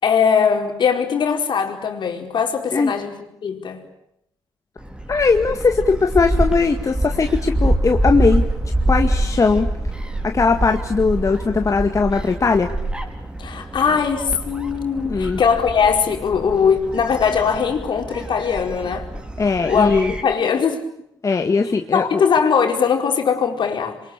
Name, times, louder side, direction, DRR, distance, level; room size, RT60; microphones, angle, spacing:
voice 1, 0.0-3.9 13.4-19.1 19.7-20.8 21.9-24.0, left 6 dB, 60° left, 4.9 m, -20 dB
Gull seagull, 4.8-20.2, right 1 dB, 10° right, 5.2 m, -25 dB
voice 2, 5.1-8.4 8.9-9.7 10.2-12.7 15.1-15.4 19.4-20.1 21.2-22.2, left 4 dB, 40° left, 2.0 m, -19 dB
27.5 x 23.5 x 8.9 m
supercardioid pair, 60°, 9 cm